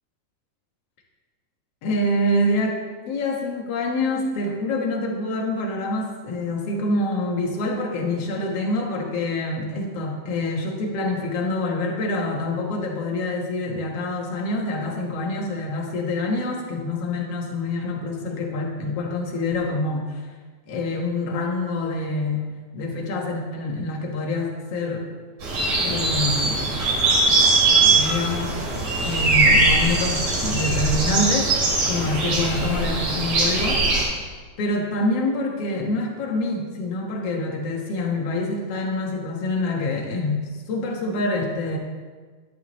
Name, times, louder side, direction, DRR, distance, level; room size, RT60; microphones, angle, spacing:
voice 1, 1.8-2.8 3.1-20.2 20.7-22.4 22.7-25.1 25.8-26.7 27.7-31.5 31.9-33.8 34.6-41.8, left 2 dB, 55° left, 0 dB, 2.3 m, -26 dB
sound 1, 25.4-34.0, right 2 dB, 80° right, 4.1 m, -21 dB
11.5 x 10.5 x 3.2 m, 1.4 s
omnidirectional pair, 3.6 m